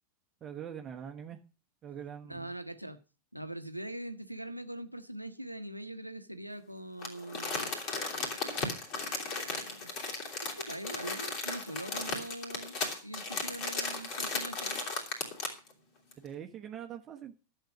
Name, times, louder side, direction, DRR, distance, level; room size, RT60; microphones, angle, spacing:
voice 1, 0.4-1.4 1.8-2.5 16.2-17.3, right 9 dB, 25° right, 1.1 m, -43 dB
voice 2, 2.3-3.0 3.3-7.7 8.6-8.7 9.4-9.9 10.4-14.8, right 1 dB, 90° right, 1.0 m, -42 dB
Crumpling crinkling, 7.0-15.7 16.1-16.2, left 3 dB, 40° left, 3.1 m, -36 dB
11.5 x 7.7 x 6.1 m
figure-of-eight pair, 90°, 0 cm